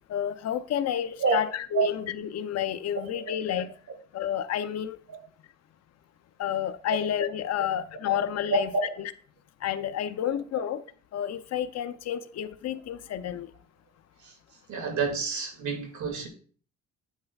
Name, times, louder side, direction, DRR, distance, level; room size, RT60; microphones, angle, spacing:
voice 1, 0.1-3.7 4.1-5.0 6.4-8.7 9.0-9.1 9.6-10.8 11.1-13.5, left 10 dB, 60° left, 0.6 m, -30 dB
voice 2, 14.7-16.3, right 5 dB, 70° right, 2.2 m, -29 dB
8.4 x 8.1 x 2.4 m
cardioid pair, 90°, 30 cm